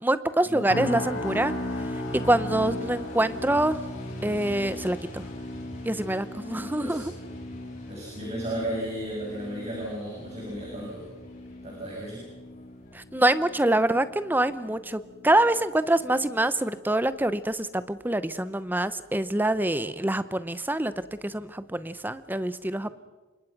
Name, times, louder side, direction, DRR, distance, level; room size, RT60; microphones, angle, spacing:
voice 1, 0.0-1.5 2.1-3.8 4.2-5.2 5.8-7.1 12.9-20.9 21.2-22.9, right 1 dB, 10° right, 14 dB, 0.7 m, -25 dB
sound 1, 0.7-15.9 16.2-16.6 17.1-17.3, left 1 dB, 85° left, 6.0 m, -37 dB
Truck, 0.9-13.2, left 1 dB, 35° left, 7.9 m, -47 dB
voice 2, 7.9-11.1 11.6-12.3, right 1 dB, 30° right, -3 dB, 7.1 m, -34 dB
28.5 x 25.5 x 5.9 m, 1.3 s
head